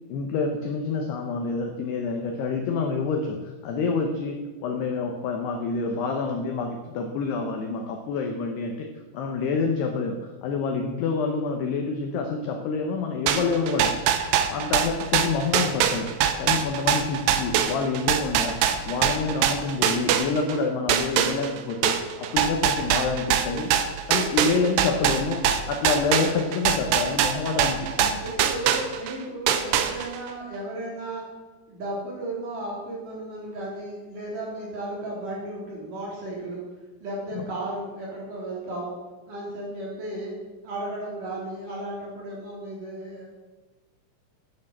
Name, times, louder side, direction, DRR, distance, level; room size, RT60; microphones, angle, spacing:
voice 1, 0.1-8.9 9.1-13.9 14.5-16.1 16.4-18.6 18.8-23.7 24.1-28.2 37.4-37.5, left 4 dB, 75° left, 4 dB, 2.4 m, -27 dB
sound 1, 13.3-20.6 20.9-29.1 29.5-30.3, right 9 dB, 85° right, 2.3 m, -23 dB
voice 2, 28.2-31.2 31.7-36.6 37.0-39.0 39.3-40.3 40.6-43.3, right 1 dB, 45° right, -4 dB, 4.4 m, -34 dB
9.9 x 9.1 x 7.2 m, 1.2 s
omnidirectional pair, 5.9 m